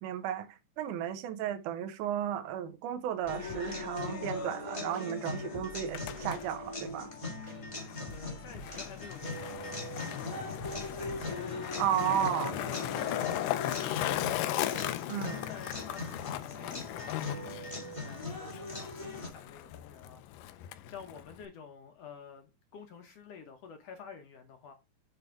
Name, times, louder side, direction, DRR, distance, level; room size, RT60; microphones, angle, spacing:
voice 1, 0.0-7.1 11.8-12.5 15.1-15.4, right 10 dB, 75° right, 2.3 m, -34 dB
sound 1, 3.2-4.3 4.6-4.7 4.9-5.3 5.5-6.8 7.1-7.2 7.4-7.8 8.1-9.3 9.6-9.7 10.0-10.3 10.6-11.3, right 1 dB, 10° right, 1.5 m, -50 dB
sound 2, 3.3-19.3, left 2 dB, 30° left, 0.5 m, -40 dB
Skateboard, 5.7-21.5, left 14 dB, 85° left, 2.2 m, -38 dB
voice 2, 8.1-10.4 11.0-13.7 14.3-24.7, left 6 dB, 70° left, 1.6 m, -50 dB
7.6 x 3.3 x 4.6 m
omnidirectional pair, 3.8 m